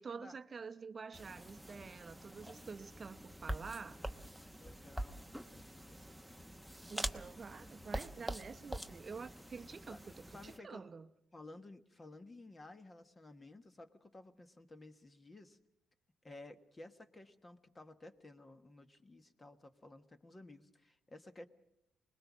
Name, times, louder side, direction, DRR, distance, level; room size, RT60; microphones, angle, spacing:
voice 1, 0.0-4.0 6.9-11.1, right 5 dB, 35° right, 0.8 m, -48 dB
sound 1, 1.1-10.6, right 1 dB, ahead, 0.9 m, -45 dB
voice 2, 4.6-5.3 5.5-6.3 9.9-10.0 10.3-10.8 11.3-15.6 16.2-21.5, left 2 dB, 25° left, 1.4 m, -55 dB
25.0 x 20.5 x 6.2 m
cardioid pair, 90°, 0 cm